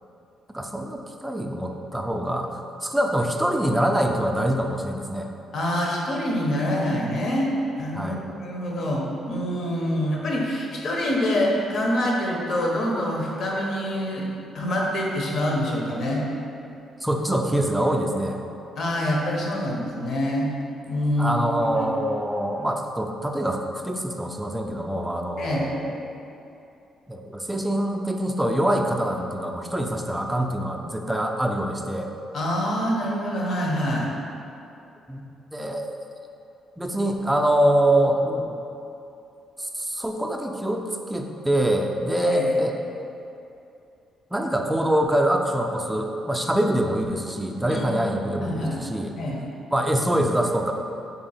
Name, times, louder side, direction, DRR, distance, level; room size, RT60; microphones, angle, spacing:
voice 1, 0.5-5.3 7.9-8.2 17.0-18.4 21.2-25.9 27.1-32.1 35.1-35.2 35.5-35.9 36.8-38.6 39.6-40.8 41.1-42.8 44.3-49.1 49.7-50.7, right 1 dB, 10° right, 2 dB, 0.3 m, -24 dB
voice 2, 5.5-7.5 7.8-14.3 14.5-16.3 18.8-20.5 20.9-21.4 21.7-21.9 25.4-25.7 32.3-34.1 42.2-42.5 47.7-48.0 48.4-48.8 49.2-49.4, left 1 dB, 65° left, -2 dB, 0.7 m, -26 dB
3.3 x 2.8 x 4.1 m, 2.7 s
cardioid pair, 90°, 0 cm